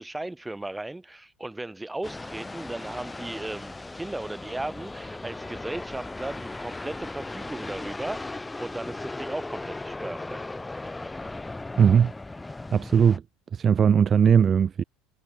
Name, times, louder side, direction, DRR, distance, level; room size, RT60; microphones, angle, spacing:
voice 1, 0.0-10.4, right 2 dB, 10° right, 1.6 m, -36 dB
sound 1, 2.0-13.2, left 2 dB, 10° left, 1.9 m, -37 dB
voice 2, 11.8-12.1 12.7-13.2 13.5-14.8, right 7 dB, 35° right, 0.4 m, -19 dB
supercardioid pair, 95°, 0 cm